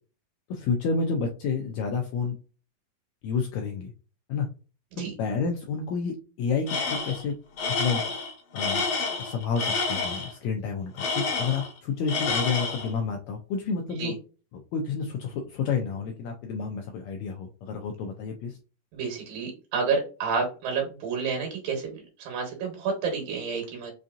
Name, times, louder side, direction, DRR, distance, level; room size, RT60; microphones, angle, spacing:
voice 1, 0.5-2.4 3.2-3.9 4.3-4.5 5.2-7.3 7.7-8.0 8.5-8.8 9.2-14.1 14.5-18.6, left 5 dB, 85° left, 2 dB, 1.6 m, -30 dB
Tools, 6.7-7.2 7.6-10.3 11.0-11.8 12.1-12.9, left 4 dB, 60° left, 1.9 m, -29 dB
voice 2, 18.9-23.9, right 5 dB, 80° right, 1 dB, 2.7 m, -30 dB
5.6 x 2.6 x 2.4 m, 0.35 s
omnidirectional pair, 3.8 m